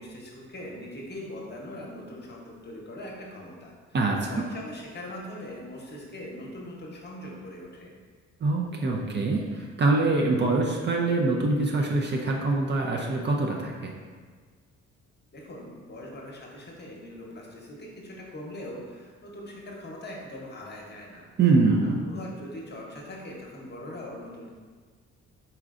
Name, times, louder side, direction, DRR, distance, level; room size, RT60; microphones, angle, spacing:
voice 1, 0.0-3.7 4.3-7.9 15.3-21.3 21.8-24.5, left 1 dB, 35° left, -2 dB, 0.9 m, -41 dB
voice 2, 3.9-4.4 8.4-13.9 21.4-22.0, right 3 dB, 35° right, 0 dB, 0.5 m, -24 dB
4.4 x 3.7 x 2.4 m, 1.5 s
cardioid pair, 90°, 30 cm